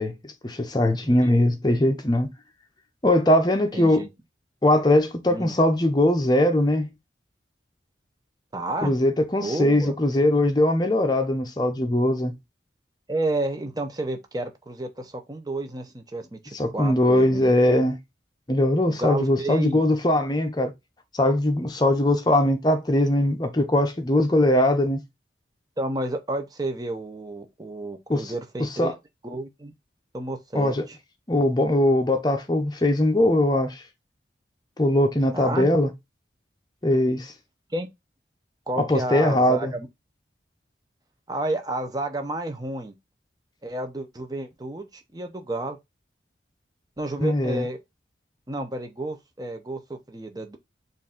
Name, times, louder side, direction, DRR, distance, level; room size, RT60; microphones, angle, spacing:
voice 1, 0.0-2.3 3.0-4.1 4.6-6.9 8.8-12.3 16.5-18.0 18.5-20.7 21.1-25.0 28.1-28.3 28.6-28.9 30.5-30.8 31.3-33.8 34.8-35.9 36.8-37.3 38.8-39.7 47.2-47.6, left 1 dB, 20° left, 0.7 m, -21 dB
voice 2, 3.7-4.1 5.3-5.6 8.5-8.9 9.4-9.9 13.1-17.5 18.9-19.8 25.8-28.9 29.2-29.7 30.1-31.0 35.3-35.7 37.7-37.9 38.7-39.9 41.3-42.9 43.6-45.8 47.0-47.8 48.5-50.6, right 2 dB, 20° right, 0.6 m, -31 dB
4.5 x 2.6 x 3.7 m
head